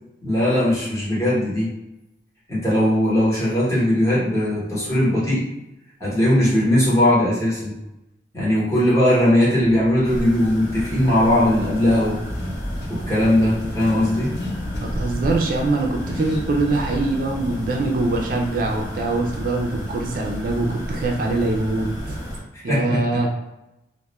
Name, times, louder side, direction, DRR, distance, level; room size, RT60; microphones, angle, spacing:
voice 1, 0.2-1.7 2.5-5.4 6.0-7.7 8.3-12.2 12.9-14.3 22.7-23.2, left 1 dB, 15° left, -8 dB, 0.9 m, -19 dB
Car / Accelerating revving vroom, 9.6-18.8, left 1 dB, 70° left, 0.6 m, -35 dB
sound 1, 10.0-22.4, equal, 45° left, 0.9 m, -32 dB
voice 2, 14.8-22.2 22.6-23.3, right 2 dB, 50° right, 1 dB, 0.3 m, -23 dB
2.3 x 2.0 x 2.9 m, 0.92 s
head